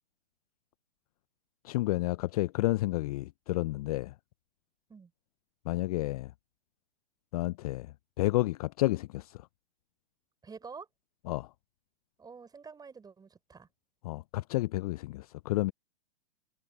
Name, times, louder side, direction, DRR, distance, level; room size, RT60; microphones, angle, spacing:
voice 1, 1.6-4.1 5.7-6.3 7.3-9.5 11.3-11.5 14.0-15.7, left 18 dB, 40° left, 0.4 m, -31 dB
voice 2, 10.4-10.9 12.2-13.7, right 5 dB, 10° right, 5.4 m, -48 dB
hypercardioid pair, 120°, 31 cm